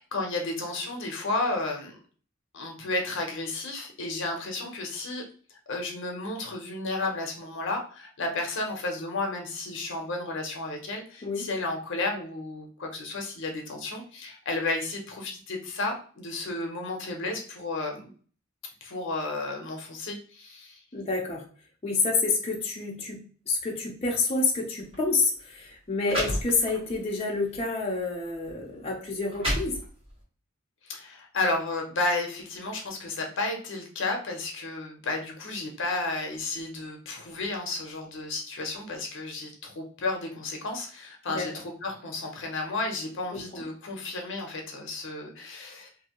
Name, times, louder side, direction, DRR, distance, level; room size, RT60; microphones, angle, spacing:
voice 1, 0.0-2.0 2.5-5.2 5.5-18.1 18.8-20.8 26.3-26.4 30.8-45.9, left 2 dB, 65° left, 2 dB, 0.8 m, -32 dB
voice 2, 20.9-21.4 21.8-29.8 41.3-41.5 43.3-43.6, left 3 dB, 30° left, -2 dB, 0.6 m, -28 dB
sound 1, 24.8-25.0 25.7-25.8 26.0-27.0 27.5-27.7 28.5-28.6 29.1-30.2, equal, 25° right, 1.3 m, -31 dB
2.7 x 2.7 x 2.9 m, 0.42 s
head